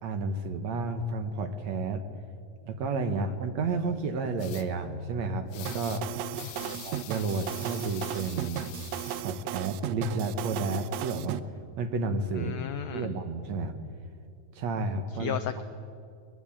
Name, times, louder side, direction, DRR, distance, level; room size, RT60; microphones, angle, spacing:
voice 1, 0.0-2.0 2.7-6.0 6.8-8.7 9.2-11.4 11.8-12.6 12.9-13.7 14.6-15.4, right 3 dB, 65° right, 8 dB, 2.1 m, -31 dB
sound 1, 4.4-4.7 5.5-6.0 6.3-9.2, left 11 dB, 70° left, 2.2 m, -45 dB
sound 2, 5.7-11.4, right 11 dB, 85° right, 1.5 m, -35 dB
voice 2, 12.3-13.1 15.2-15.6, left 10 dB, 85° left, 10 dB, 1.5 m, -34 dB
22.0 x 21.5 x 8.7 m, 2.4 s
omnidirectional pair, 4.0 m